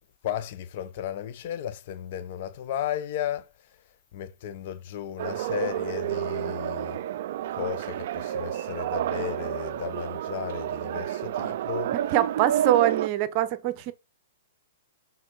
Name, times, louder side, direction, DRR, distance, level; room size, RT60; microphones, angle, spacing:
voice 1, 0.2-3.5 4.1-7.0 7.5-11.9, left 10 dB, 50° left, 0.9 m, -34 dB
sound 1, 5.2-13.1, right 11 dB, 55° right, 0.3 m, -30 dB
voice 2, 12.1-13.9, right 13 dB, 40° right, 0.8 m, -23 dB
6.2 x 3.9 x 4.3 m
hypercardioid pair, 120°, 0 cm